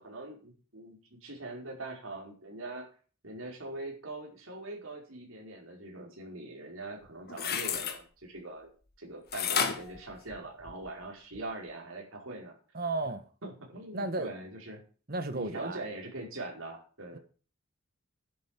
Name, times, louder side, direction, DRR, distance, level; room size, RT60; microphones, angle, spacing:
voice 1, 0.0-2.9 3.2-8.7 9.0-12.5 13.0-13.1 13.4-14.8 15.3-17.2, right 2 dB, 70° right, 4.9 m, -42 dB
sound 1, 7.0-8.0 9.3-10.9 11.3-11.4, left 7 dB, 45° left, 1.8 m, -32 dB
voice 2, 12.7-13.2 13.9-14.3 15.1-15.8 17.1-17.2, right 2 dB, 45° right, 1.4 m, -33 dB
10.5 x 8.6 x 7.3 m
head